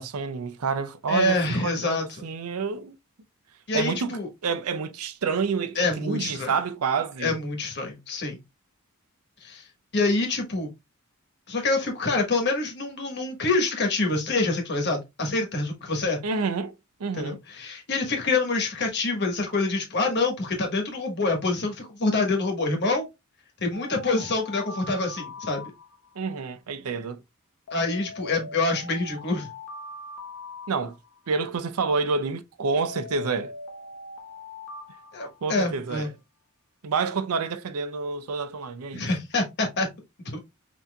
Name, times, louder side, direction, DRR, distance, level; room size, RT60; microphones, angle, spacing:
voice 1, 0.0-2.9 3.7-7.4 16.2-16.7 17.0-17.4 26.2-27.2 30.7-31.0 31.3-33.5 35.4-36.1 36.8-39.1, right 5 dB, 85° right, 0.5 m, -28 dB
voice 2, 1.1-2.2 3.7-4.3 5.7-6.5 7.2-8.4 9.4-9.6 9.9-10.7 11.5-16.2 17.2-23.1 23.6-25.6 27.7-29.5 35.1-36.1 38.9-39.9 40.2-40.4, left 3 dB, 50° left, 1.3 m, -26 dB
Alarm, 23.7-26.3 27.7-31.3 32.7-35.9, left 2 dB, 85° left, 0.9 m, -41 dB
6.0 x 2.8 x 2.2 m
head